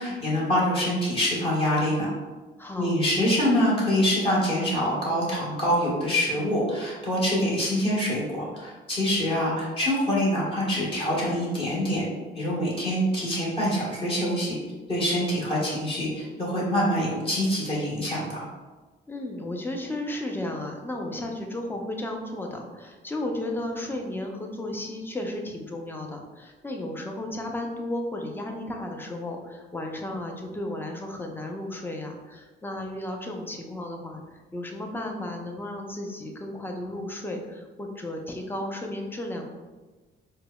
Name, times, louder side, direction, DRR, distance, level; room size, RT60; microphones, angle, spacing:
voice 1, 0.0-2.1 2.8-12.1 12.3-14.6 14.9-18.4, equal, 25° left, -6 dB, 1.3 m, -25 dB
voice 2, 2.6-2.9 19.1-39.4, left 1 dB, 10° left, 2 dB, 0.5 m, -34 dB
4.5 x 2.1 x 2.3 m, 1.3 s
cardioid pair, 90°, 20 cm